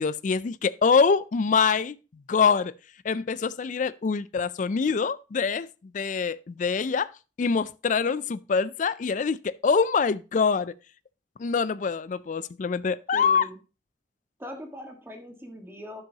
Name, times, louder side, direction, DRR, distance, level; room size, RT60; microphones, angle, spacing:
voice 1, 0.0-2.0 2.3-2.7 3.0-7.1 7.4-10.7 11.4-13.4, left 5 dB, 45° left, 0.4 m, -25 dB
voice 2, 13.1-13.6 14.4-16.0, left 1 dB, 15° right, 1.6 m, -40 dB
10.5 x 7.3 x 2.9 m
head